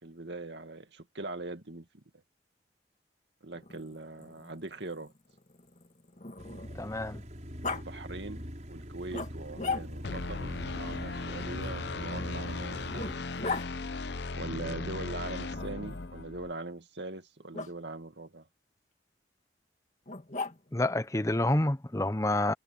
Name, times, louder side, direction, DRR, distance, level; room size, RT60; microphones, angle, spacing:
voice 1, 0.0-2.0 3.4-5.1 7.7-13.1 14.3-18.5, right 2 dB, 70° right, 2.3 m, -41 dB
Growling, 3.5-6.9 7.6-7.8 9.1-10.2 11.6-13.7 15.5-16.2 17.5-17.7 20.1-20.9, left 4 dB, 40° left, 2.1 m, -39 dB
sound 1, 6.4-13.1, equal, 40° right, 6.8 m, -42 dB
voice 2, 6.8-7.2 20.7-22.5, left 1 dB, 15° left, 0.8 m, -28 dB
sound 2, 10.0-16.5, left 3 dB, 70° left, 0.8 m, -37 dB
head